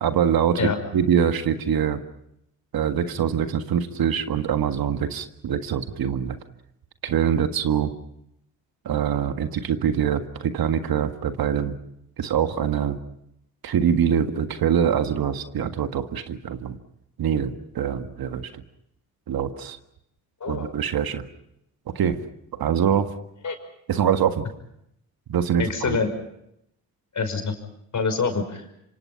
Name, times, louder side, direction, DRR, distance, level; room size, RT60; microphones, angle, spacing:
voice 1, 0.0-2.0 2.7-6.4 7.0-7.9 8.9-11.8 12.2-13.0 13.6-16.8 17.2-18.6 19.3-19.8 20.5-21.2 22.0-22.2 22.5-23.1 23.9-24.4 25.3-26.0, right 8 dB, 60° right, 8 dB, 1.8 m, -24 dB
voice 2, 20.4-20.7 23.4-23.6 25.6-26.1 27.1-27.5 27.9-28.6, left 5 dB, 45° left, 6 dB, 5.7 m, -25 dB
26.5 x 25.5 x 5.8 m, 0.77 s
supercardioid pair, 65°, 41 cm